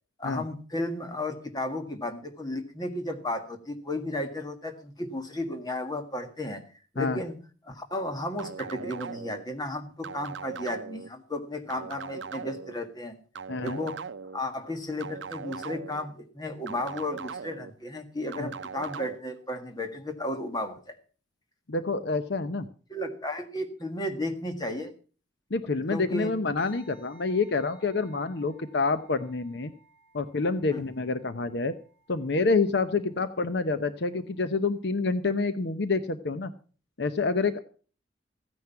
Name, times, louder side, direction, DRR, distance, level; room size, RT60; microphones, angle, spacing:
voice 1, 0.2-6.6 6.9-7.4 7.6-13.2 13.6-21.0 22.9-24.9 25.9-26.3 30.7-30.9, left 1 dB, 20° left, 6 dB, 1.8 m, -34 dB
sound 1, 8.4-9.4 10.0-11.1 11.7-12.7 13.3-14.4 15.0-16.1 16.7-17.7 18.3-19.2, right 6 dB, 80° right, 0.6 m, -39 dB
voice 2, 13.5-13.8 18.4-18.5 21.7-22.7 25.5-29.7 30.1-31.7 32.1-36.5 37.0-37.6, left 3 dB, 65° left, 11 dB, 0.8 m, -27 dB
sound 2, 26.6-35.3, right 3 dB, 10° right, 4.6 m, -60 dB
15.0 x 9.7 x 5.7 m, 0.39 s
head